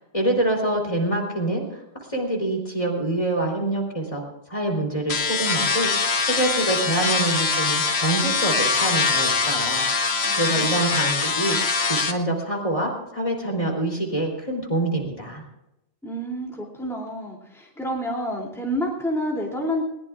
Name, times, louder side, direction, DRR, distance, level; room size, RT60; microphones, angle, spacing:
voice 1, 0.1-1.8 2.1-4.2 4.5-9.8 10.4-11.6 11.9-15.4, right 1 dB, 30° left, 1 dB, 3.4 m, -25 dB
sound 1, 5.1-12.1, left 4 dB, 90° left, 1.6 m, -23 dB
voice 2, 10.2-10.8 16.0-19.8, equal, ahead, -2 dB, 2.8 m, -29 dB
21.0 x 19.5 x 2.4 m, 0.88 s
omnidirectional pair, 1.1 m